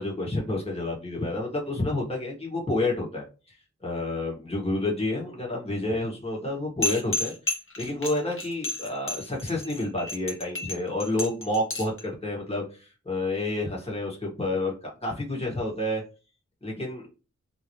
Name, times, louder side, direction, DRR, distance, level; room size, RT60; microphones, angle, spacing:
voice 1, 0.0-3.6 3.8-7.3 7.8-16.0 16.6-17.1, left 2 dB, 20° left, -2 dB, 1.7 m, -29 dB
sound 1, 6.8-12.0, left 2 dB, 45° left, 1.4 m, -31 dB
3.9 x 2.9 x 3.1 m, 0.33 s
wide cardioid pair, 55°, 29 cm